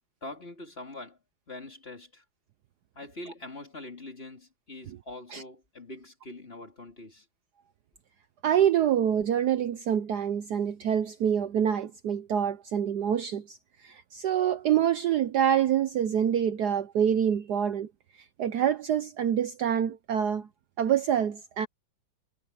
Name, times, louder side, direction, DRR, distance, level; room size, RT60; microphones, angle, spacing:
voice 1, 0.2-1.2 1.5-2.2 3.0-7.3, left 2 dB, 30° left, 3.5 m, -43 dB
voice 2, 8.4-17.9 18.4-20.5 20.8-21.7, right 9 dB, 65° right, 1.2 m, -26 dB
omnidirectional pair, 2.2 m